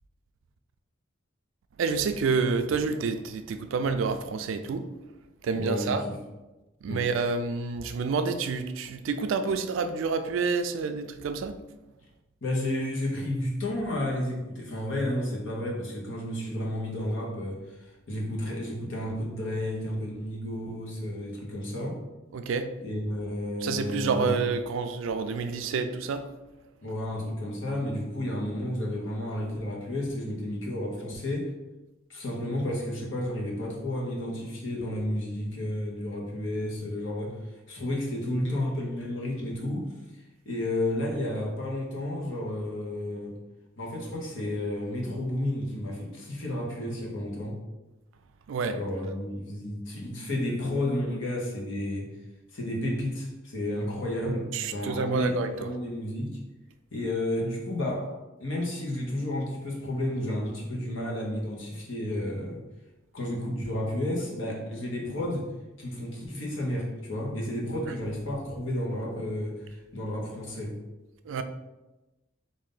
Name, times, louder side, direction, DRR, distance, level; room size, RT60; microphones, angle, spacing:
voice 1, 1.8-4.9 5.4-6.0 6.8-11.6 22.3-22.7 23.6-26.3 48.5-48.8 54.5-55.7 67.9-68.0 71.3-71.4, right 4 dB, 70° right, 0.3 m, -28 dB
voice 2, 5.5-6.2 6.9-7.0 12.4-22.0 22.8-24.4 26.8-31.5 32.1-43.4 43.8-47.6 48.7-52.2 52.5-56.5 56.9-58.1 58.4-62.6 63.1-65.5 65.8-70.8, left 1 dB, 70° left, 1.0 m, -32 dB
3.7 x 2.5 x 3.8 m
head